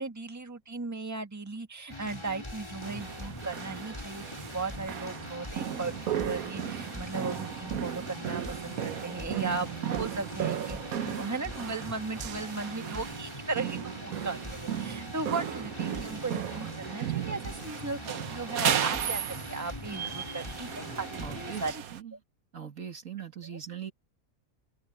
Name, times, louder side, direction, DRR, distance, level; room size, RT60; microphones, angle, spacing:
voice 1, 0.0-4.2 4.5-19.2 19.5-21.1 21.3-21.8 23.5-23.6, right 3 dB, 10° right, 1.7 m, -37 dB
sound 1, 1.9-21.7, left 1 dB, 20° left, 3.1 m, -43 dB
sound 2, 2.8-22.0, right 9 dB, 90° right, 1.4 m, -35 dB
voice 2, 21.2-22.1 22.5-23.9, right 8 dB, 70° right, 2.4 m, -41 dB
omnidirectional pair, 1.5 m